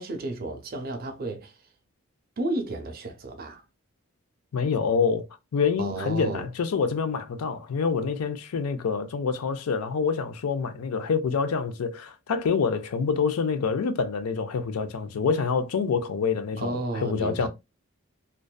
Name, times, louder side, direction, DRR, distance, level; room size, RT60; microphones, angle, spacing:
voice 1, 0.0-1.6 2.4-3.6 5.8-6.5 16.6-17.5, right 2 dB, 40° right, 0.5 m, -32 dB
voice 2, 4.5-5.3 5.5-17.5, left 5 dB, 85° left, 0.4 m, -26 dB
2.5 x 2.2 x 2.2 m
head